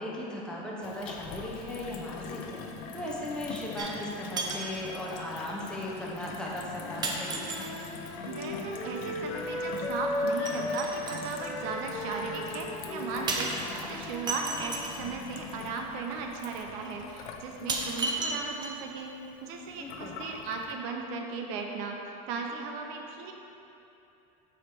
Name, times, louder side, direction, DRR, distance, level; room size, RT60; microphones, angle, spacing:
voice 1, 0.0-2.6 2.9-7.4 19.8-20.2, left 1 dB, 5° left, -5 dB, 0.9 m, -37 dB
Gurgling / Water tap faucet / Sink (filling or washing), 0.8-20.7, left 5 dB, 75° left, 0.7 m, -44 dB
sound 1, 3.8-4.1 4.4-4.8 5.7-5.8 7.0-7.9 10.5-11.3 13.3-15.0 16.2-16.3 16.8-16.9 17.7-18.9 19.3-19.4, right 3 dB, 25° right, 0.6 m, -34 dB
Wind instrument woodwind instrument, 6.7-14.9, left 1 dB, 40° left, 1.0 m, -36 dB
voice 2, 8.3-23.3, right 4 dB, 65° right, 2 dB, 0.7 m, -37 dB
6.7 x 4.9 x 4.5 m, 2.9 s
supercardioid pair, 145°, 18 cm